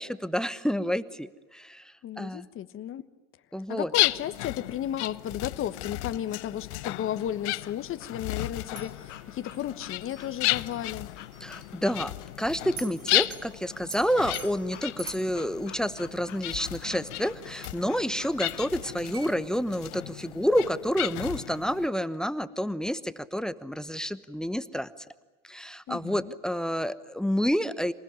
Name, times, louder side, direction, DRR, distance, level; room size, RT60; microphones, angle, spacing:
voice 1, 0.0-2.5 3.5-3.9 11.4-24.9 25.4-27.9, equal, ahead, 15 dB, 1.0 m, -29 dB
voice 2, 2.0-3.1 3.7-11.1 25.9-26.3, left 11 dB, 35° left, 11 dB, 1.3 m, -34 dB
sound 1, 3.9-21.9, left 20 dB, 65° left, 0.9 m, -34 dB
Breathing / Dog, 7.1-19.3, left 11 dB, 85° left, 1.6 m, -51 dB
sound 2, 8.5-19.3, right 4 dB, 40° right, 4.4 m, -48 dB
27.0 x 20.0 x 9.8 m, 1.3 s
hypercardioid pair, 95°, 36 cm